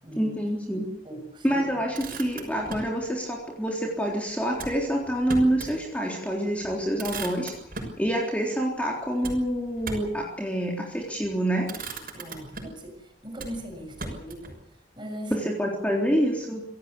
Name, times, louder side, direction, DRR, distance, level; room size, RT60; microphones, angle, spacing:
voice 1, 0.2-0.9 1.4-7.5 8.0-11.7 15.3-16.6, equal, 5° left, -1 dB, 3.7 m, -27 dB
voice 2, 1.0-1.6 12.1-13.0 13.2-14.6 15.0-15.5, equal, 25° right, 4 dB, 6.5 m, -39 dB
Motor vehicle (road), 1.7-3.0 4.5-5.8 6.2-6.3 6.6-8.0 9.2-10.2 11.1-11.3 11.6-12.9 13.4-14.6, right 3 dB, 50° right, 6.4 m, -38 dB
26.5 x 17.0 x 8.4 m, 0.76 s
head